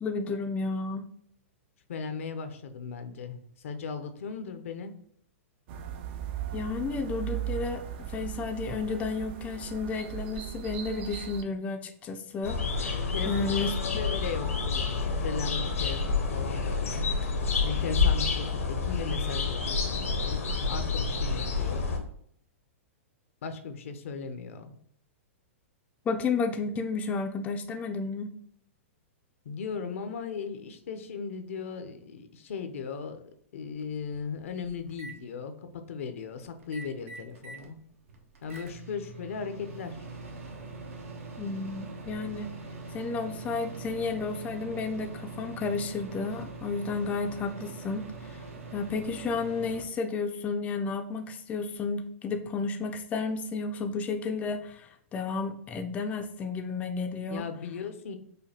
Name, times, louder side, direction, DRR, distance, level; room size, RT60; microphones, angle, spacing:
voice 1, 0.0-1.1 6.5-13.7 26.1-28.3 41.4-42.5 42.9-48.4 48.7-57.4, left 4 dB, 20° left, 5 dB, 0.4 m, -32 dB
voice 2, 1.9-4.9 13.1-17.1 17.6-21.8 23.4-24.7 29.4-33.2 33.5-37.8 38.4-40.0 57.3-58.2, left 5 dB, 70° left, 8 dB, 0.6 m, -37 dB
sound 1, 5.7-11.4, right 10 dB, 50° right, 0.4 m, -37 dB
sound 2, 12.4-22.0, left 4 dB, 90° left, 0.9 m, -29 dB
Microwave oven, 33.6-33.7 34.2-35.1 36.6-37.7 38.1-49.8, right 3 dB, 80° right, 0.8 m, -43 dB
5.0 x 2.2 x 2.8 m, 0.66 s
hypercardioid pair, 125°, 7 cm